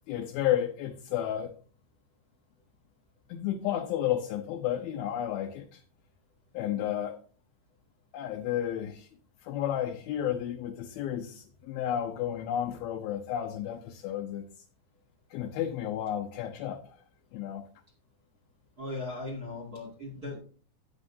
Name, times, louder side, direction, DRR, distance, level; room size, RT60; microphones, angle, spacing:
voice 1, 0.1-1.5 3.3-5.8 6.5-7.2 8.1-9.1 9.4-14.5 15.3-16.8 17.3-17.6, left 11 dB, 80° left, 4 dB, 2.3 m, -32 dB
voice 2, 18.8-20.4, left 2 dB, 30° right, 0 dB, 1.7 m, -38 dB
13.0 x 9.6 x 2.7 m, 0.42 s
omnidirectional pair, 4.9 m